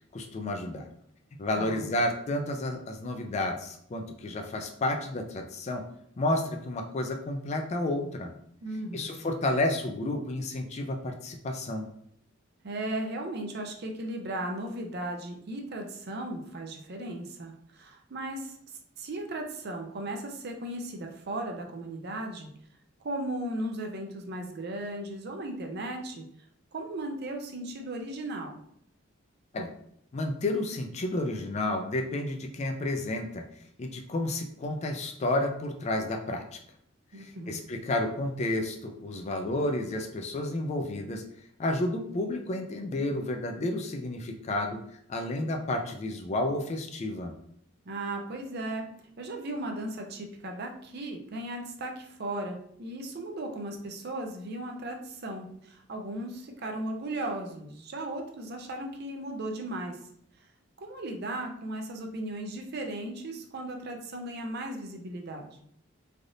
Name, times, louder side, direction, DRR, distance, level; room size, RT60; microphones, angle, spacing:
voice 1, 0.1-0.9 1.4-5.8 6.2-8.3 8.9-11.9 29.5-29.7 30.1-33.4 33.8-36.6 37.1-41.2 41.6-44.8 45.1-47.3, left 1 dB, 35° left, 4 dB, 0.3 m, -31 dB
voice 2, 1.6-1.9 8.6-9.3 12.6-18.6 19.0-22.5 23.0-26.2 26.7-28.6 37.1-37.6 47.9-48.9 49.2-60.0 60.4-60.5 60.8-65.6, right 1 dB, 50° right, 3 dB, 0.5 m, -36 dB
3.3 x 2.5 x 2.6 m, 0.68 s
head